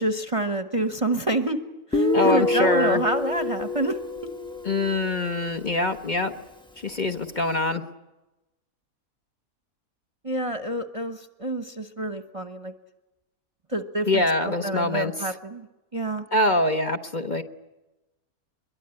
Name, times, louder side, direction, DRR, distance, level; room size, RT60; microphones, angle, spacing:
voice 1, 0.0-1.6 1.9-4.0 10.2-12.7 13.7-15.7 15.9-16.3, right 1 dB, 25° right, 7 dB, 1.0 m, -28 dB
Guitar, 1.9-5.4, left 2 dB, 5° left, 1.0 m, -26 dB
voice 2, 2.1-3.0 4.6-6.3 6.8-7.8 14.1-15.4 16.3-17.4, left 2 dB, 35° left, 6 dB, 1.2 m, -24 dB
23.5 x 22.0 x 9.8 m, 1.0 s
omnidirectional pair, 1.5 m